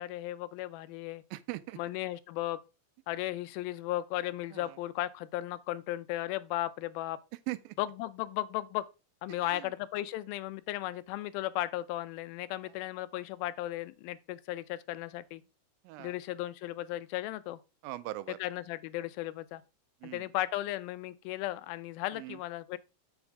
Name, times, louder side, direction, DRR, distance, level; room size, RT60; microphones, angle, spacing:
voice 1, 0.0-1.2 1.8-2.6 3.1-7.2 7.8-8.8 9.2-15.4 16.0-17.6 18.4-19.6 20.1-22.8, left 15 dB, 90° left, 2.5 m, -35 dB
voice 2, 1.3-1.8 4.5-4.8 7.5-7.8 9.3-9.7 12.6-12.7 15.8-16.2 17.8-18.4 20.0-20.3 22.1-22.4, right 18 dB, 85° right, 2.3 m, -41 dB
7.2 x 7.1 x 3.4 m
omnidirectional pair, 4.1 m